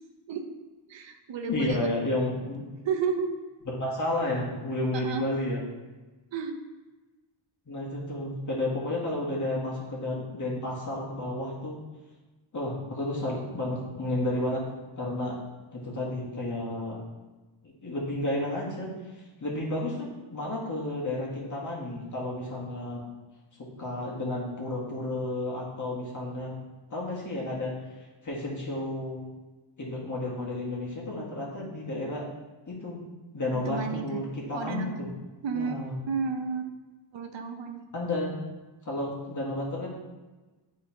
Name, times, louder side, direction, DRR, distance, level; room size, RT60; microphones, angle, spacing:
voice 1, 0.9-1.9 2.8-3.3 4.9-5.3 6.3-6.5 33.5-34.2 34.5-35.0 35.4-35.7 36.1-36.6 37.1-37.9, right 5 dB, 65° right, 4 dB, 0.7 m, -32 dB
voice 2, 1.5-2.7 3.6-5.6 7.7-11.8 12.5-14.6 15.0-15.4 15.7-17.0 17.6-18.9 19.4-23.0 23.8-26.6 26.9-27.7 28.2-29.2 29.8-32.3 32.7-33.0 33.3-35.1 35.5-36.0 37.9-38.4 38.9-39.9, left 1 dB, 40° left, -4 dB, 1.8 m, -31 dB
8.9 x 3.8 x 2.9 m, 1.2 s
cardioid pair, 95°, 47 cm